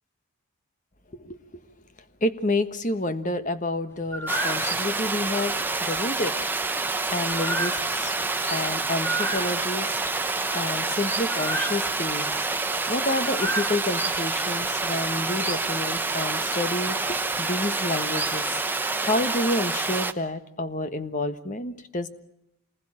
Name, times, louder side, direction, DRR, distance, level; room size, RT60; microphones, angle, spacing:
voice 1, 2.2-5.5 5.8-6.3 7.1-8.1 8.5-10.0 10.5-12.4 12.9-18.6 19.0-22.1, left 2 dB, 35° left, 11 dB, 1.4 m, -29 dB
sound 1, 4.1-6.0 6.4-8.7 9.0-12.3 12.8-12.9 13.2-14.2 14.6-15.7 16.0-16.4 17.1-17.4 18.0-18.5, right 1 dB, 10° left, 2.8 m, -33 dB
Water, 4.3-20.1, right 3 dB, 10° right, 0.9 m, -27 dB
27.0 x 20.5 x 8.8 m, 0.86 s
head